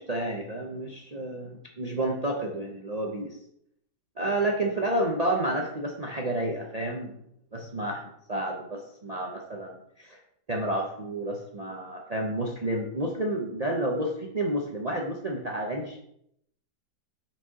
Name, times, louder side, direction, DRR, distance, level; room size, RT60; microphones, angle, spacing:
voice 1, 0.0-3.4 4.2-7.1 7.5-8.0 8.3-10.2 10.5-16.0, right 1 dB, 65° right, 0 dB, 0.3 m, -30 dB
5.4 x 4.8 x 4.1 m, 0.72 s
omnidirectional pair, 1.8 m